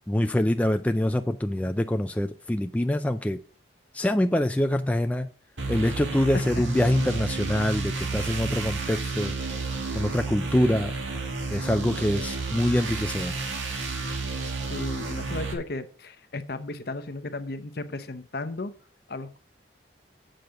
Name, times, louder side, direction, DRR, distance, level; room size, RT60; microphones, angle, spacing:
voice 1, 0.1-3.4 3.9-5.3 5.7-9.3 9.9-10.9 11.5-13.3, left 1 dB, 10° left, 0.3 m, -25 dB
sound 1, 5.6-15.5, right 3 dB, 90° right, 1.9 m, -31 dB
voice 2, 6.3-6.6 10.5-10.8 14.6-18.7 19.1-19.4, left 2 dB, 55° left, 0.8 m, -35 dB
7.8 x 5.0 x 6.8 m
head